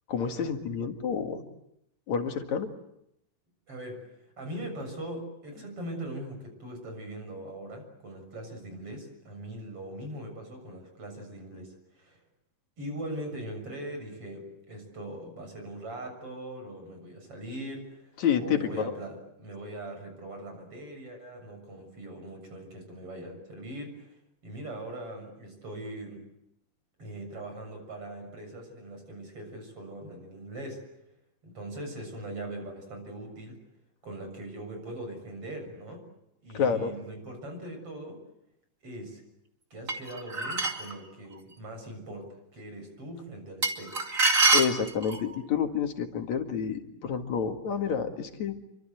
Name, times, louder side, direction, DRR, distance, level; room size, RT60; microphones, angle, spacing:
voice 1, 0.1-1.4 2.1-2.7 18.2-18.8 36.5-36.9 44.5-48.6, left 7 dB, 65° left, 5 dB, 3.1 m, -29 dB
voice 2, 3.7-12.2 12.8-24.2 24.4-26.3 27.0-30.8 31.4-33.6 34.0-36.1 36.4-38.2 38.8-39.2 39.7-44.0, right 1 dB, 45° right, 5 dB, 7.8 m, -41 dB
sound 1, 39.9-40.9 43.6-45.3, right 3 dB, 25° right, 2.5 m, -25 dB
29.0 x 25.0 x 8.0 m, 0.81 s
omnidirectional pair, 3.7 m